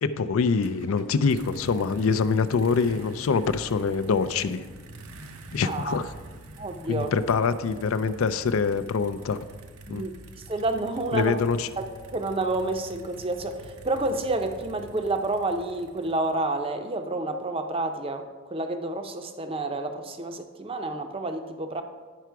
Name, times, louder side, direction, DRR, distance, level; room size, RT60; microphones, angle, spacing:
voice 1, 0.0-4.7 5.5-6.1 6.9-9.4 9.9-10.1 11.1-11.7, left 5 dB, 70° left, 13 dB, 0.4 m, -25 dB
sound 1, 0.6-16.6, right 1 dB, 85° right, 0.7 m, -46 dB
voice 2, 5.6-6.0 6.6-7.1 9.9-10.1 10.5-11.4 11.8-21.8, right 2 dB, 25° right, 6 dB, 0.6 m, -29 dB
10.0 x 5.8 x 4.6 m, 1.5 s
head